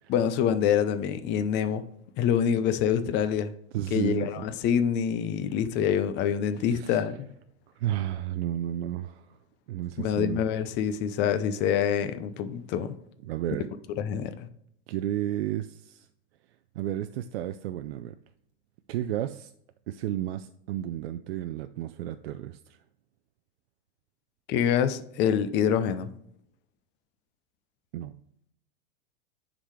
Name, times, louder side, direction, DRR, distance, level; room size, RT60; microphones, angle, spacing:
voice 1, 0.1-1.8 2.2-3.5 3.9-7.3 10.0-12.9 14.0-14.3 24.5-26.1, left 8 dB, 35° left, 0.6 m, -26 dB
voice 2, 3.7-4.5 6.6-7.0 7.8-9.4 9.7-10.4 13.2-13.7 14.9-16.1 16.8-18.1 18.9-19.5 19.9-22.8 27.9-28.1, right 12 dB, 70° right, 0.5 m, -32 dB
9.8 x 3.9 x 3.1 m
hypercardioid pair, 110°, 33 cm